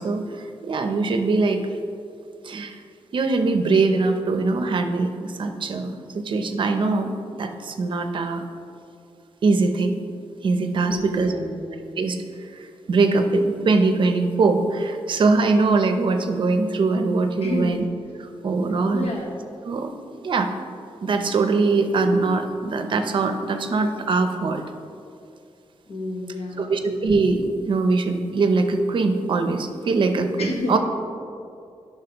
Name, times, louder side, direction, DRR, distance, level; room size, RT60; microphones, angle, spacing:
voice 1, 0.0-1.6 2.4-2.8 3.1-7.1 7.4-8.4 9.4-10.0 10.4-11.3 12.0-17.8 18.2-19.1 19.6-19.9 20.2-20.5 21.0-24.6 26.6-30.8, right 3 dB, 50° right, 6 dB, 0.6 m, -22 dB
voice 2, 10.9-11.6 17.4-17.8 18.9-19.3 25.9-26.8 30.4-30.8, left 2 dB, 75° left, 0 dB, 1.3 m, -30 dB
11.0 x 5.7 x 3.0 m, 2.5 s
wide cardioid pair, 150°, 10 cm